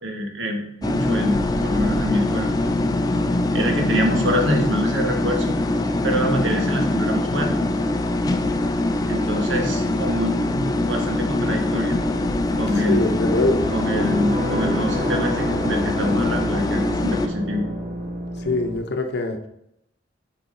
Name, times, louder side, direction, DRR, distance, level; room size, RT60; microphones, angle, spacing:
voice 1, 0.0-2.5 3.5-5.5 6.0-7.6 9.1-12.0 12.5-13.1 13.7-17.6, equal, 85° right, 2 dB, 1.5 m, -25 dB
sound 1, 0.8-17.3, left 2 dB, 20° left, 0.5 m, -23 dB
voice 2, 12.8-13.7 18.4-19.4, left 2 dB, 60° left, 6 dB, 0.8 m, -23 dB
sound 2, 12.8-18.8, equal, 65° right, 2.3 m, -30 dB
6.9 x 4.8 x 3.8 m, 0.80 s
head